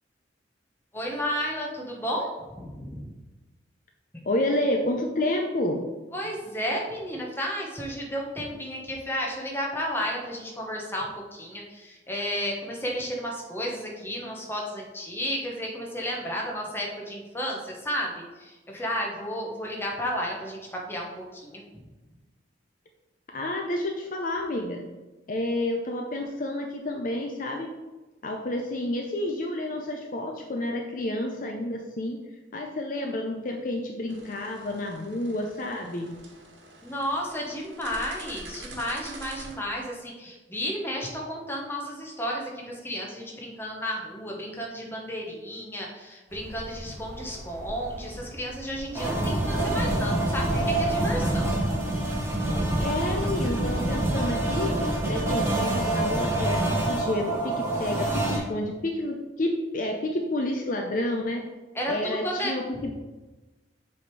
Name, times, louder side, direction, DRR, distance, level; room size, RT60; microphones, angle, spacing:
voice 1, 0.9-3.0 4.1-4.2 6.1-21.6 36.8-51.6 61.7-62.5, equal, 10° left, -1 dB, 1.1 m, -32 dB
voice 2, 4.2-5.8 23.3-24.8 25.3-27.7 28.2-32.2 32.5-36.1 52.8-54.8 55.1-61.4 61.9-62.9, left 1 dB, 45° left, 2 dB, 0.6 m, -29 dB
sound 1, 34.1-39.5, right 2 dB, 70° right, 1.3 m, -46 dB
sound 2, 46.3-52.5, equal, 50° right, 1.8 m, -42 dB
sound 3, 48.9-58.4, right 1 dB, 15° right, 1.1 m, -26 dB
7.4 x 3.5 x 4.7 m, 1.2 s
head